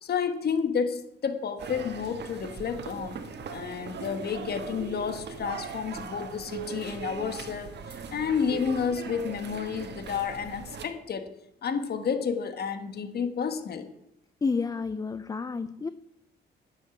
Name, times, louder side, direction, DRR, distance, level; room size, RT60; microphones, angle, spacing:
voice 1, 0.0-3.2 3.5-11.3 11.6-13.9, left 6 dB, 55° left, 1.4 m, -31 dB
sound 1, 1.6-10.9, right 5 dB, 60° right, 1.6 m, -40 dB
voice 2, 14.4-15.9, left 4 dB, 20° left, 0.4 m, -30 dB
9.8 x 8.0 x 7.3 m
cardioid pair, 90°, 20 cm